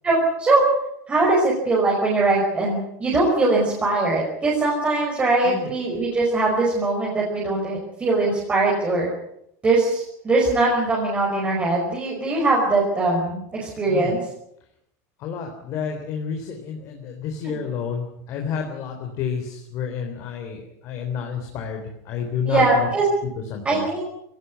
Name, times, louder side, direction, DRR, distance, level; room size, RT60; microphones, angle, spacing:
voice 1, 0.0-0.6 1.1-9.1 9.6-14.2 22.5-23.0 23.6-24.0, right 2 dB, 15° right, -3 dB, 5.4 m, -21 dB
voice 2, 15.2-22.9 23.5-23.9, left 6 dB, 35° left, 3 dB, 3.6 m, -30 dB
22.0 x 17.5 x 9.5 m, 0.77 s
supercardioid pair, 170°, 9 cm